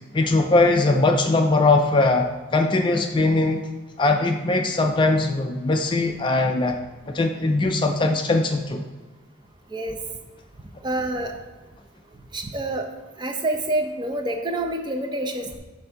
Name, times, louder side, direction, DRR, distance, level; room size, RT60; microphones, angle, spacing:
voice 1, 0.1-3.7 4.0-6.8 7.1-8.8, left 2 dB, 25° left, 4 dB, 0.3 m, -20 dB
voice 2, 10.8-11.4 12.3-12.9 13.2-15.6, right 1 dB, 20° right, 4 dB, 0.5 m, -27 dB
7.6 x 2.6 x 5.6 m, 1.2 s
head